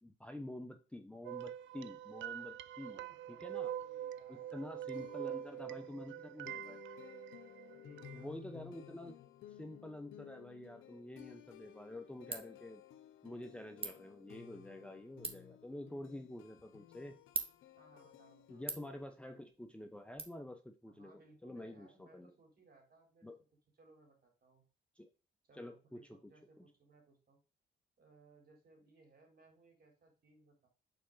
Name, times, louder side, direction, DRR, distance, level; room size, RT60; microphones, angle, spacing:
voice 1, 0.0-3.0 3.4-3.7 4.3-6.8 8.1-9.2 9.5-12.8 13.2-17.2 18.5-22.3 23.2-23.4 25.0-25.1 25.5-26.2, left 1 dB, 5° left, 6 dB, 0.8 m, -48 dB
sound 1, 1.2-8.3, right 11 dB, 75° right, 0.5 m, -45 dB
voice 2, 2.9-6.7 7.7-9.2 17.8-18.7 20.9-23.3 23.8-24.7 25.5-27.4 28.0-30.7, right 3 dB, 50° right, 2 dB, 3.8 m, -65 dB
sound 2, 4.9-19.0, left 11 dB, 85° left, 0.8 m, -56 dB
Ratchet pawl, 11.1-20.2, right 4 dB, 30° right, 1.5 m, -48 dB
6.9 x 4.4 x 3.8 m, 0.33 s
cardioid pair, 90°, 20 cm